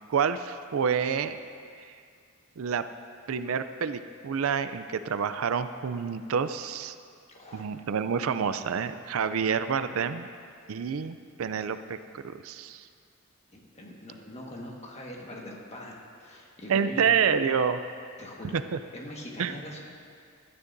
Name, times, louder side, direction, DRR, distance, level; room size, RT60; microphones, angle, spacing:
voice 1, 0.1-1.4 1.8-1.9 2.6-2.8 3.3-6.9 7.5-10.3 10.7-12.9 16.7-17.8 18.5-18.8 19.4-19.5, right 6 dB, 70° right, 11 dB, 0.4 m, -28 dB
voice 2, 7.3-7.7 13.5-17.1 18.2-18.6 18.9-19.8, left 1 dB, 30° left, -2 dB, 1.5 m, -42 dB
16.5 x 12.5 x 2.6 m, 2.2 s
head